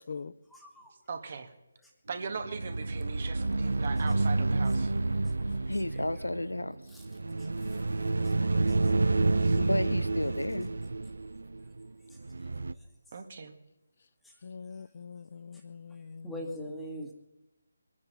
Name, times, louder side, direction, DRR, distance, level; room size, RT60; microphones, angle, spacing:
voice 1, 0.5-0.9 6.9-7.0 16.2-17.1, equal, 5° left, 1.8 m, -40 dB
voice 2, 1.1-1.5 2.1-4.9 8.3-8.7 9.1-9.6 13.1-13.5, right 5 dB, 45° right, 1.8 m, -40 dB
sound 1, 2.4-12.7, right 3 dB, 70° right, 0.7 m, -29 dB
voice 3, 5.7-6.7 9.6-10.7, left 1 dB, 90° left, 1.1 m, -32 dB
voice 4, 14.4-16.3, left 5 dB, 50° left, 0.6 m, -43 dB
23.0 x 9.5 x 5.6 m
figure-of-eight pair, 155°, 0 cm